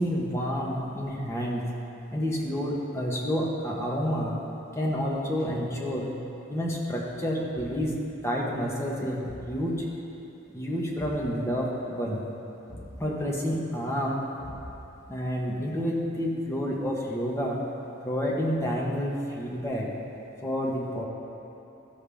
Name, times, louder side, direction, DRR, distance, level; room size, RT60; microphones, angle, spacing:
voice 1, 0.0-1.6 2.1-4.4 4.7-6.1 6.5-7.9 8.2-9.9 10.5-12.2 13.0-14.3 15.1-17.6 18.0-19.9 20.4-21.0, equal, 15° left, -4 dB, 1.1 m, -29 dB
Thump thud, 7.5-8.0 9.2-9.6 10.9-11.3 12.7-13.0 14.4-15.0, equal, 30° left, 2.3 m, -43 dB
14.5 x 7.1 x 3.5 m, 2.9 s
head